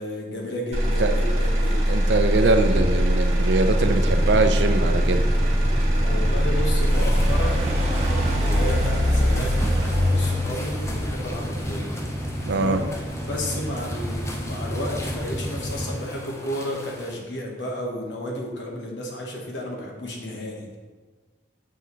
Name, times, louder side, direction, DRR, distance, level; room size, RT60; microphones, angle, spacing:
voice 1, 0.0-2.1 6.0-11.9 12.5-20.8, left 1 dB, 85° left, 0 dB, 1.3 m, -32 dB
Motor vehicle (road), 0.7-14.7 15.2-15.7, equal, 35° right, 1.2 m, -22 dB
voice 2, 1.9-5.2 12.5-12.8, right 3 dB, 80° right, 8 dB, 0.5 m, -22 dB
sound 1, 3.6-15.9, equal, 15° right, 1.7 m, -31 dB
sound 2, 6.8-17.1, left 1 dB, 15° left, 0.5 m, -40 dB
7.3 x 5.7 x 3.1 m, 1.4 s
head